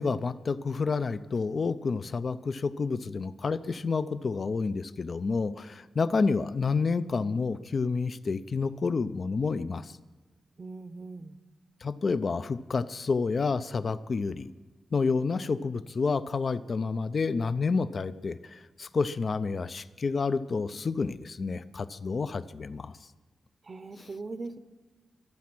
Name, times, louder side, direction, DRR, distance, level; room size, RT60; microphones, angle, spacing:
voice 1, 0.0-10.0 11.8-14.5 14.9-22.9, left 4 dB, 50° left, 14 dB, 0.6 m, -29 dB
voice 2, 10.6-11.4 23.6-24.6, right 3 dB, 45° right, 12 dB, 0.8 m, -40 dB
23.5 x 8.5 x 6.1 m, 1.3 s
cardioid pair, 75°, 0 cm